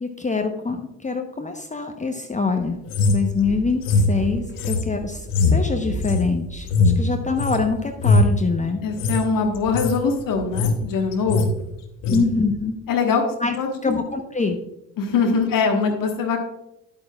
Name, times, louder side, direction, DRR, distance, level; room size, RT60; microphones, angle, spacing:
voice 1, 0.0-2.8 3.1-8.8 12.1-12.8 13.4-13.6 13.8-14.6, left 4 dB, 20° left, 5 dB, 0.9 m, -24 dB
sound 1, 2.9-7.6 8.0-8.4 8.9-9.2 9.5-10.0 10.3-10.9 11.1-11.5 12.0-12.2, left 3 dB, 70° left, 1.0 m, -21 dB
voice 2, 8.8-11.4 12.1-12.2 12.9-13.2 13.6-13.9 15.0-16.4, left 5 dB, 55° left, 3 dB, 1.4 m, -22 dB
10.5 x 8.5 x 2.4 m, 0.85 s
figure-of-eight pair, 45°, 40 cm